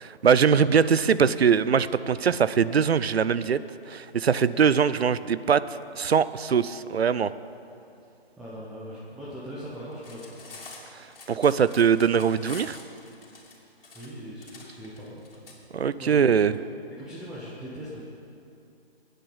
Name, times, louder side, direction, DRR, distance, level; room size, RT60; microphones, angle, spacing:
voice 1, 0.2-3.6 3.9-5.6 6.0-7.3 11.0-12.8 15.7-16.5, right 7 dB, 75° right, 16 dB, 0.6 m, -22 dB
voice 2, 8.4-10.4 13.9-15.5 15.9-16.3 17.0-18.0, equal, ahead, -9 dB, 0.7 m, -40 dB
Cutlery silverware, 9.9-15.5, left 3 dB, 60° left, 3.1 m, -46 dB
18.5 x 9.2 x 5.6 m, 2.6 s
figure-of-eight pair, 145°, 32 cm